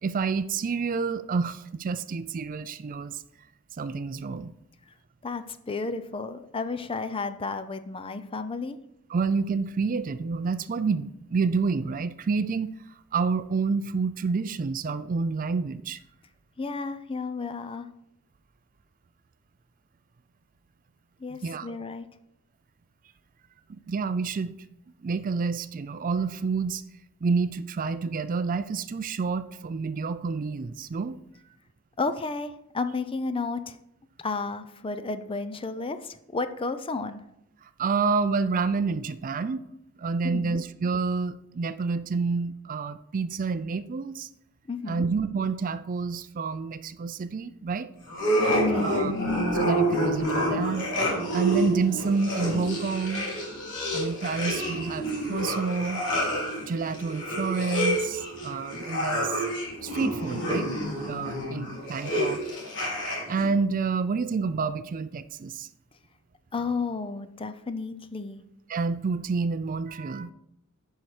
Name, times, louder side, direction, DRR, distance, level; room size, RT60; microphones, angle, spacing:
voice 1, 0.0-3.2 3.7-4.5 9.1-12.7 13.1-16.0 21.4-21.7 23.9-24.5 25.0-26.8 27.2-31.2 37.6-39.6 40.0-44.3 44.9-47.9 48.8-49.1 49.5-50.9 51.3-53.3 53.9-56.0 56.6-59.5 59.8-60.7 60.9-62.4 63.3-65.7 68.7-70.3, right 4 dB, 40° right, 13 dB, 0.4 m, -28 dB
voice 2, 5.2-8.8 16.6-17.9 21.2-22.1 32.0-33.8 34.2-37.2 40.2-40.6 44.7-45.1 48.5-49.1 66.5-68.4, left 4 dB, 25° left, 11 dB, 0.5 m, -32 dB
sound 1, 48.1-63.5, equal, 55° left, 3.2 m, -28 dB
10.5 x 5.6 x 4.9 m, 0.81 s
head